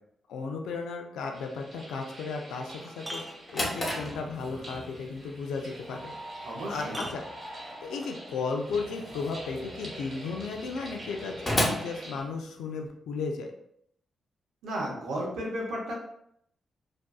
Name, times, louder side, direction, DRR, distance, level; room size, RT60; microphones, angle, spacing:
voice 1, 0.3-3.2 3.5-6.1 6.6-7.2 7.8-13.5, left 4 dB, 85° left, 3 dB, 0.3 m, -35 dB
sound 1, 1.3-12.2, right 1 dB, 60° right, 1.2 m, -45 dB
sound 2, 2.6-4.1 6.1-6.2 6.9-8.2 9.5-9.6, right 1 dB, 10° right, 0.5 m, -43 dB
Drawer open or close, 3.2-12.9, left 1 dB, 35° left, 0.9 m, -36 dB
voice 2, 6.4-7.0 14.6-15.9, right 1 dB, 85° right, -3 dB, 0.7 m, -33 dB
2.5 x 2.3 x 2.3 m, 0.72 s
supercardioid pair, 50°, 0 cm